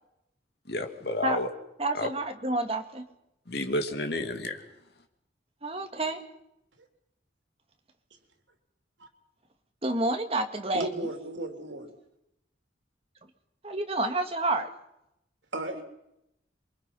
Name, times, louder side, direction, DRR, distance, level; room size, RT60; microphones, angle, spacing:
voice 1, 0.7-1.5 1.9-2.1 3.5-4.6, left 1 dB, 60° left, 5 dB, 2.6 m, -30 dB
voice 2, 1.8-3.1 5.6-6.2 9.8-10.9 13.6-14.7, right 2 dB, 30° right, 5 dB, 2.0 m, -29 dB
voice 3, 10.7-11.9 15.5-15.8, right 2 dB, 80° right, 4 dB, 3.5 m, -34 dB
27.5 x 24.0 x 5.6 m, 0.83 s
head